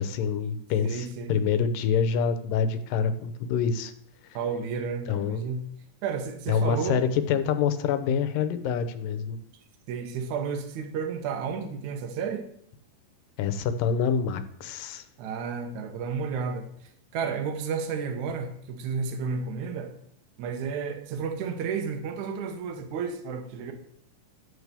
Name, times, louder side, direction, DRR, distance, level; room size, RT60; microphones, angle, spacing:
voice 1, 0.0-3.9 5.1-5.4 6.5-9.4 13.4-15.0, left 6 dB, 80° left, 10 dB, 2.4 m, -26 dB
voice 2, 0.8-1.3 4.3-5.7 6.0-7.0 9.9-12.5 15.2-19.9 20.4-23.7, right 5 dB, 65° right, 5 dB, 2.3 m, -32 dB
11.5 x 4.8 x 6.7 m, 0.67 s
omnidirectional pair, 3.9 m